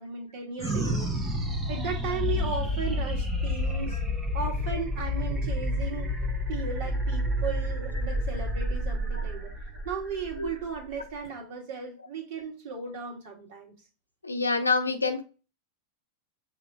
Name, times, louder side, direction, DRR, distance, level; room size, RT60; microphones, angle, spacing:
voice 1, 0.0-1.3 1.7-4.0 4.3-6.1 6.5-9.5 9.8-13.7, right 6 dB, 50° right, 2.0 m, -36 dB
voice 2, 0.6-1.0 3.9-4.0 9.1-9.2 10.4-10.5 14.2-15.2, left 3 dB, 80° left, 0.8 m, -28 dB
sound 1, 0.6-11.3, left 1 dB, 15° right, 1.2 m, -29 dB
6.7 x 3.0 x 4.9 m
figure-of-eight pair, 90°, 0 cm